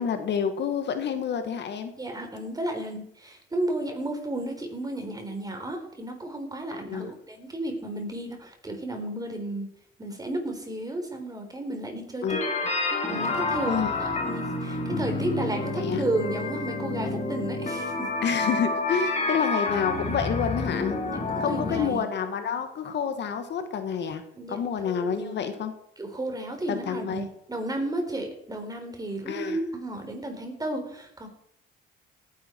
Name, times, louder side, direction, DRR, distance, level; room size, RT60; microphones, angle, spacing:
voice 1, 0.0-1.9 6.7-7.1 12.2-12.4 13.7-13.9 15.8-16.0 18.2-21.0 21.4-24.2 24.5-25.7 26.7-27.3 29.3-29.6, left 7 dB, 60° left, 8 dB, 1.9 m, -28 dB
voice 2, 2.0-9.7 10.0-12.4 13.1-18.1 21.0-22.1 24.3-24.6 24.8-25.4 26.0-31.3, right 1 dB, 20° right, 4 dB, 4.2 m, -33 dB
sound 1, 12.3-21.9, left 3 dB, 35° left, 3.8 m, -29 dB
17.5 x 10.5 x 4.7 m, 0.74 s
cardioid pair, 85°, 20 cm